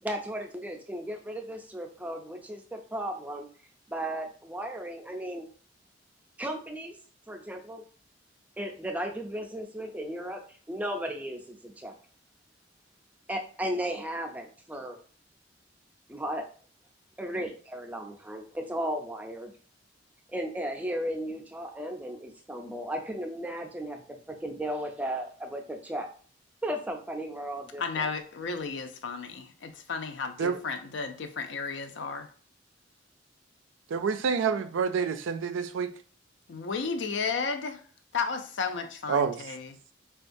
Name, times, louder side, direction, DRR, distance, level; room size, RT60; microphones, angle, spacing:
voice 1, 0.0-3.5 3.9-5.5 6.4-6.9 7.3-7.8 8.6-12.0 13.3-15.0 16.1-16.4 17.2-19.5 20.3-26.1 26.6-28.1, equal, 10° right, 0.4 m, -35 dB
voice 2, 27.8-32.3 36.5-37.8 38.1-39.8, left 5 dB, 65° left, 0.5 m, -33 dB
voice 3, 33.9-35.9 39.1-39.4, right 6 dB, 85° right, 0.4 m, -27 dB
4.3 x 2.3 x 2.5 m
head